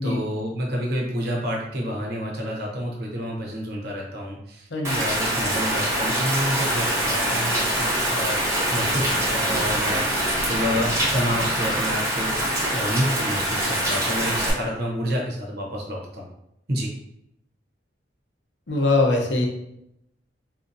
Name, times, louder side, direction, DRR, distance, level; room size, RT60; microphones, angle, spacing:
voice 1, 0.0-12.4 12.7-16.3 16.7-16.9, equal, 60° right, -1 dB, 0.9 m, -29 dB
voice 2, 4.7-5.1 18.7-19.5, left 2 dB, 70° left, 1 dB, 0.7 m, -22 dB
Rain, 4.8-14.5, right 1 dB, 15° right, 0.8 m, -24 dB
3.8 x 2.7 x 2.6 m, 0.80 s
head